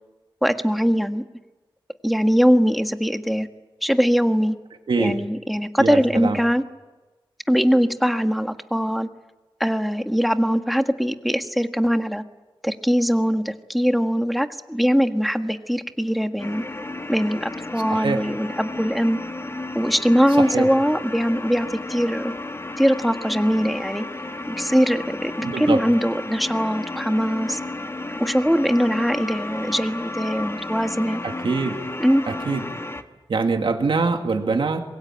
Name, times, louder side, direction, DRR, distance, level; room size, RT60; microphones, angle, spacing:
voice 1, 0.4-1.2 2.0-3.5 3.8-4.6 5.0-6.6 7.5-9.1 9.6-12.2 12.6-16.6 17.1-19.2 19.7-22.3 22.8-24.0 24.5-27.6 28.2-31.2 32.0-32.2, equal, ahead, 7 dB, 1.5 m, -21 dB
voice 2, 5.8-6.4 17.9-18.3 20.4-20.7 25.4-25.8 31.2-31.8 32.3-32.6 33.3-34.8, right 4 dB, 75° right, 4 dB, 2.3 m, -23 dB
sound 1, 16.4-33.0, left 2 dB, 30° left, 1.7 m, -33 dB
26.5 x 22.5 x 9.0 m, 1.2 s
wide cardioid pair, 100°, 9 cm